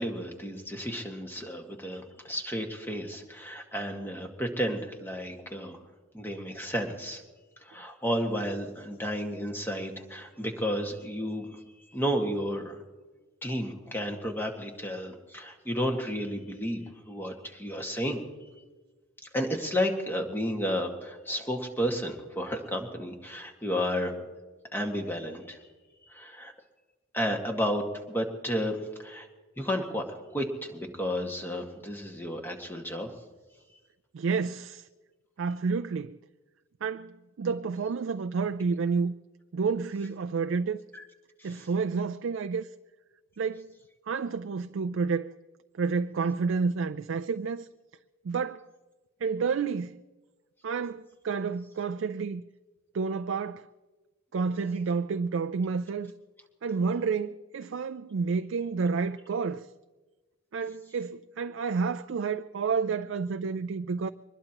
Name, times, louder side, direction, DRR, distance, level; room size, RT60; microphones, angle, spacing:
voice 1, 0.0-5.8 6.1-7.2 7.6-11.6 11.9-12.8 13.4-18.2 19.3-24.2 24.7-25.6 26.1-26.5 27.1-27.8 28.1-29.3 29.6-30.0 30.3-33.1 40.9-41.0 41.4-41.7, equal, 10° left, 1.7 m, -32 dB
voice 2, 34.1-34.9 35.4-36.2 36.8-39.1 39.5-40.8 41.4-42.7 43.4-43.7 44.1-45.3 45.8-47.7 48.2-48.7 49.2-50.0 50.6-52.4 52.9-53.7 54.3-56.1 56.6-59.7 60.5-64.1, right 5 dB, 65° right, 0.4 m, -30 dB
23.5 x 20.5 x 2.9 m
head